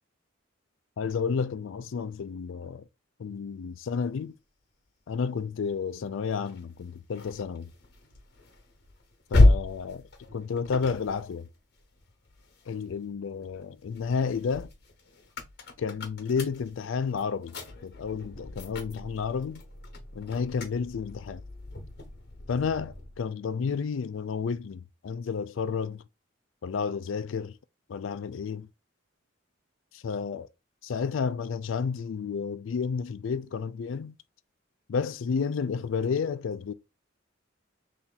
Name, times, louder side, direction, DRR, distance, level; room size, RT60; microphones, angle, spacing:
voice 1, 1.0-2.9 3.2-4.3 5.1-7.7 9.3-11.5 12.7-14.7 15.8-17.5 17.8-19.6 20.1-21.4 22.5-26.0 26.6-27.6 27.9-28.7 29.9-30.5 30.8-34.2 34.9-36.7, left 5 dB, 80° left, 0.4 m, -31 dB
sound 1, 6.5-13.0 13.4-23.2, left 2 dB, 55° left, 1.1 m, -31 dB
3.1 x 2.9 x 3.9 m
head